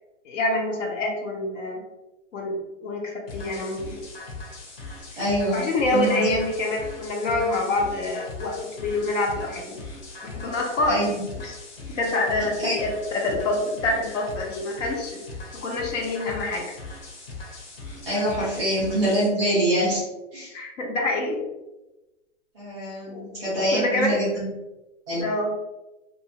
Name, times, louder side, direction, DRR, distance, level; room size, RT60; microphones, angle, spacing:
voice 1, 0.2-1.8 2.3-3.9 5.5-9.8 10.2-11.0 11.4-11.5 11.9-15.2 15.5-16.8 20.5-21.4 23.1-23.3 23.7-24.2 25.2-25.5, left 2 dB, 80° left, 1 dB, 0.9 m, -26 dB
sound 1, 3.3-19.3, left 3 dB, 50° left, 0.9 m, -40 dB
voice 2, 5.2-5.6 5.9-6.4 10.9-11.2 12.6-12.7 18.1-20.0 20.3-20.5 22.5-24.4 25.1-25.2, right 1 dB, 5° left, -10 dB, 0.4 m, -24 dB
2.7 x 2.2 x 2.8 m, 1.0 s
hypercardioid pair, 180°, 37 cm